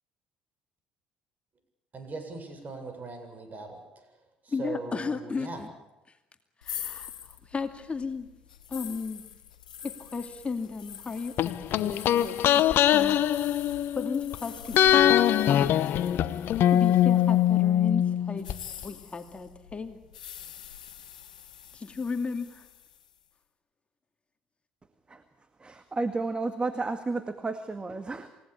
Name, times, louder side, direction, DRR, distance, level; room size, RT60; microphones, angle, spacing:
voice 1, 1.9-5.6, right 3 dB, 40° right, 7 dB, 7.5 m, -40 dB
voice 2, 4.5-5.7 6.6-7.1 7.4-8.3 8.7-9.2 9.8-13.2 14.0-16.2 16.7-18.5 18.8-20.0 21.7-22.7, left 4 dB, 30° left, 6 dB, 2.4 m, -35 dB
sound 1, 6.6-17.6 18.3-23.2, left 9 dB, 90° left, 1.9 m, -45 dB
sound 2, 11.4-14.4 14.7-18.6 18.8-18.9, left 11 dB, 60° left, 1.0 m, -22 dB
voice 3, 25.6-28.3, right 3 dB, 25° right, 9 dB, 2.0 m, -32 dB
28.5 x 18.5 x 8.6 m, 0.98 s
hypercardioid pair, 55°, 4 cm